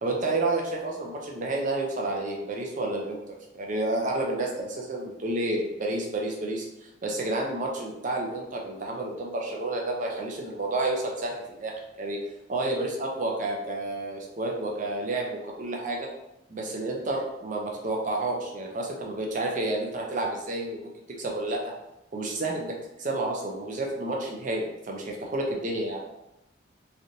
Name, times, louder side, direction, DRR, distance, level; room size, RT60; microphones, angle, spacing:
voice 1, 0.0-12.2 12.5-16.1 16.5-20.9 21.2-21.6 22.1-26.0, right 2 dB, 40° right, -1 dB, 0.6 m, -30 dB
3.2 x 2.6 x 2.7 m, 0.90 s
head